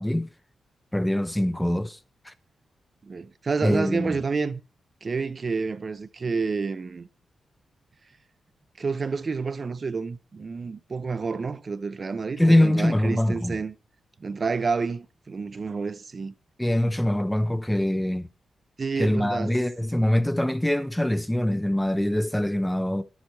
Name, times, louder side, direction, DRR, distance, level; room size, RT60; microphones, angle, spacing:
voice 1, 0.9-2.0 2.2-2.3 3.6-4.2 12.4-13.6 16.6-18.3 19.0-23.0, left 1 dB, 5° left, 0.5 m, -23 dB
voice 2, 3.0-4.6 5.0-7.1 8.8-13.7 14.2-16.3 18.8-19.5, right 4 dB, 40° right, 0.6 m, -29 dB
11.0 x 7.2 x 4.5 m
wide cardioid pair, 110°, 0 cm